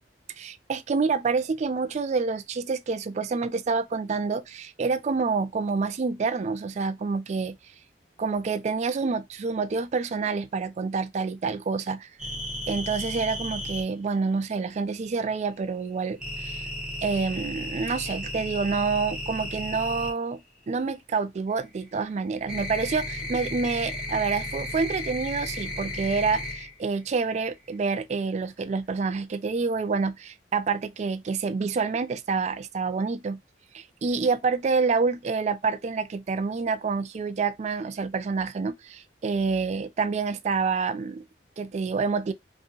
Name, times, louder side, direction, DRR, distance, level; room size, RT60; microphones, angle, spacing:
voice 1, 0.4-7.6 8.2-12.1 12.7-16.6 17.0-20.4 20.7-33.4 33.7-41.2 41.6-42.3, right 4 dB, 40° right, 0.3 m, -27 dB
sound 1, 12.2-13.8 16.2-20.1 21.5-26.8 27.1-27.7, left 1 dB, 5° right, 0.8 m, -34 dB
2.7 x 2.6 x 2.7 m
head